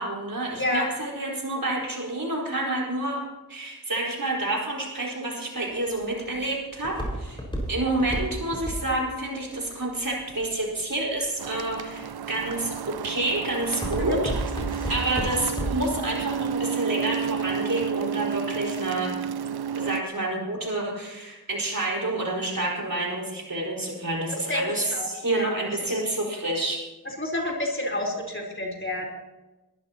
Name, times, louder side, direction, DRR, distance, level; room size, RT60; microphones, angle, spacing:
voice 1, 0.0-3.2 3.5-7.4 7.7-19.1 19.7-26.8, right 2 dB, 60° right, -3 dB, 4.7 m, -29 dB
voice 2, 0.5-0.9 14.0-14.2 24.5-25.5 25.8-25.9 27.2-29.1, left 2 dB, 30° left, -1 dB, 3.9 m, -29 dB
Walk footsteps, 5.7-10.8 11.4-11.9 12.4-12.8 13.1-16.0 16.3-16.4, equal, 15° left, 5.0 m, -31 dB
sound 1, 11.4-20.0, right 7 dB, 85° right, 0.5 m, -31 dB
22.0 x 13.5 x 2.9 m, 1.1 s
wide cardioid pair, 55°, 37 cm